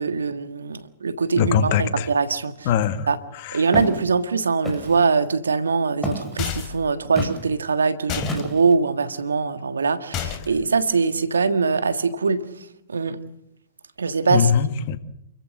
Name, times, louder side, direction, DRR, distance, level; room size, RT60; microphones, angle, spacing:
voice 1, 0.0-2.7 3.1-3.2 3.5-12.4 12.9-13.2 14.0-14.5, right 4 dB, 85° right, 11 dB, 1.6 m, -22 dB
voice 2, 1.4-2.1 2.7-3.1 3.4-3.6 14.3-15.0, left 8 dB, 50° left, 10 dB, 1.9 m, -21 dB
Walk footsteps, 3.7-4.0 4.6-5.0 6.0-6.4 7.2-7.4 8.2-8.7, left 1 dB, ahead, 6.3 m, -28 dB
sound 1, 6.4-6.9 8.1-8.4 10.1-10.6, left 9 dB, 35° left, 2.9 m, -29 dB
28.5 x 14.5 x 7.7 m, 0.80 s
hypercardioid pair, 120°, 0 cm